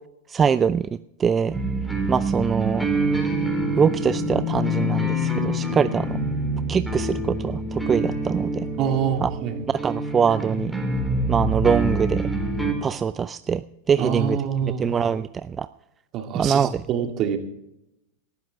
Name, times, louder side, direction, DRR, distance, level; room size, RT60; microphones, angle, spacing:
voice 1, 0.3-0.9 1.2-1.6 2.1-2.9 3.8-6.2 6.7-8.7 9.2-9.3 9.7-10.7 11.3-12.2 12.8-15.7 16.3-16.8, right 7 dB, 25° right, 14 dB, 0.4 m, -23 dB
sound 1, 1.5-12.7, right 1 dB, ahead, 3.8 m, -26 dB
voice 2, 8.8-9.5 14.0-15.0 16.1-17.4, right 7 dB, 40° right, 4 dB, 2.4 m, -26 dB
19.0 x 13.0 x 3.5 m, 0.85 s
hypercardioid pair, 95°, 0 cm